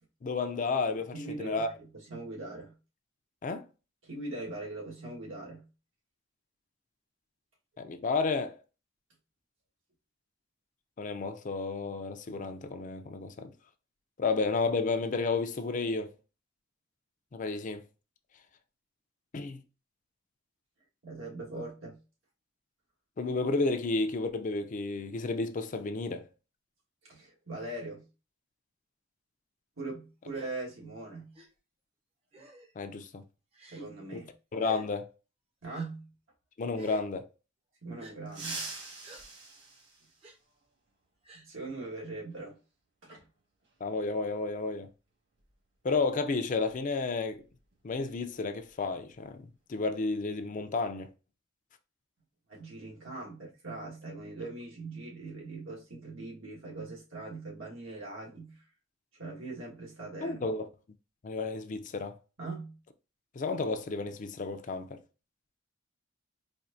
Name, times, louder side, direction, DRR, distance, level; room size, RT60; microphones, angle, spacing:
voice 1, 0.2-1.7 3.4-3.6 7.8-8.6 11.0-13.5 14.2-16.1 17.3-17.8 19.3-19.6 23.2-26.3 32.8-33.2 34.1-34.2 34.5-35.1 36.6-37.3 43.8-44.9 45.8-47.4 47.8-51.1 60.2-60.7 61.2-62.2 63.3-65.0, left 3 dB, 40° left, 0.4 m, -32 dB
voice 2, 1.1-2.8 4.0-5.7 21.0-22.0 27.0-28.1 29.8-31.4 33.7-34.3 35.6-36.1 37.8-38.7 41.3-42.6 43.0-43.3 52.5-58.6 59.1-60.5 62.4-62.8, right 2 dB, 85° right, 1.6 m, -41 dB
Gasp, 30.3-30.5 31.3-31.5 32.3-32.7 33.5-33.9 34.6-34.9 35.7-35.9 36.7-37.1 38.0-38.1 39.0-39.2 40.2-40.4 41.2-41.5, right 1 dB, 30° right, 0.6 m, -49 dB
sound 1, 38.3-40.7 42.3-42.4 43.6-43.7 45.4-45.5 45.9-46.1 46.6-48.8 49.0-49.3 49.7-50.1, right 3 dB, 60° right, 1.5 m, -44 dB
4.4 x 2.7 x 2.6 m
head